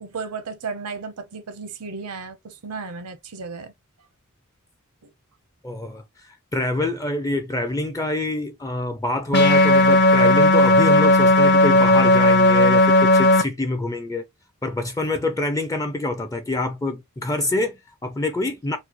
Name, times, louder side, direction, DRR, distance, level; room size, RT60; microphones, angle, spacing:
voice 1, 0.0-3.7 5.0-5.1, right 4 dB, 85° right, 0.8 m, -34 dB
voice 2, 5.6-14.2 14.6-18.8, left 2 dB, 15° left, 0.4 m, -26 dB
sound 1, 9.3-13.4, left 1 dB, 50° left, 0.7 m, -15 dB
3.9 x 2.2 x 2.9 m
head